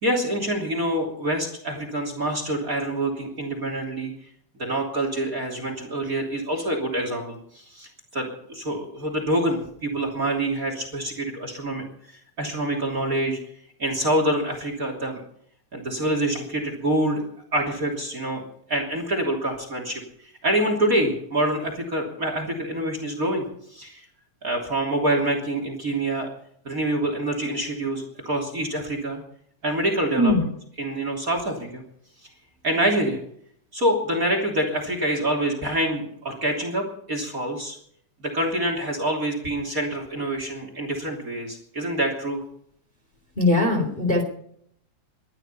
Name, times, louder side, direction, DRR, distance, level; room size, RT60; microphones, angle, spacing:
voice 1, 0.0-4.1 4.6-11.8 12.4-13.4 13.8-15.2 15.7-17.2 17.5-18.4 18.7-20.0 20.4-23.5 23.7-24.1 24.4-26.3 26.6-29.2 29.6-30.3 30.8-31.8 32.6-33.2 33.7-37.8 38.2-42.4, right 1 dB, 30° right, 4 dB, 3.3 m, -26 dB
voice 2, 30.2-30.5 43.3-44.2, left 2 dB, 20° left, 3 dB, 3.1 m, -20 dB
22.0 x 12.0 x 5.6 m, 0.66 s
omnidirectional pair, 3.3 m